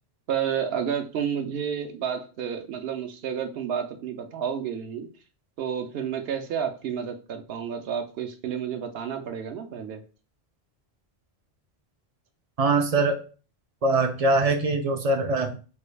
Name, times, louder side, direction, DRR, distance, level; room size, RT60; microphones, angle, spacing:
voice 1, 0.3-5.1 5.6-10.0, right 8 dB, 70° right, 5 dB, 0.8 m, -30 dB
voice 2, 12.6-13.2 13.8-15.5, right 2 dB, 55° right, 6 dB, 0.4 m, -22 dB
3.7 x 2.3 x 3.2 m, 0.36 s
omnidirectional pair, 1.1 m